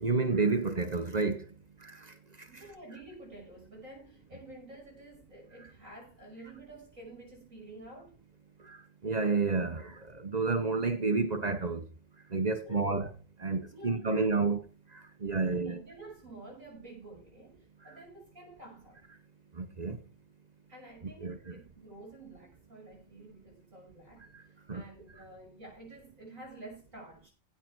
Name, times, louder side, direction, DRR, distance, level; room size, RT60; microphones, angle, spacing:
voice 1, 0.0-1.4 1.8-2.0 8.7-8.8 9.0-11.8 12.3-13.1 13.4-14.6 15.2-15.8 19.6-20.0 21.0-21.6 24.7-24.8, right 4 dB, 80° right, 0.3 m, -30 dB
voice 2, 2.5-8.2 12.6-13.0 13.7-14.5 15.4-19.0 20.7-27.3, right 2 dB, 35° right, 6.3 m, -50 dB
16.0 x 5.8 x 4.7 m
omnidirectional pair, 2.3 m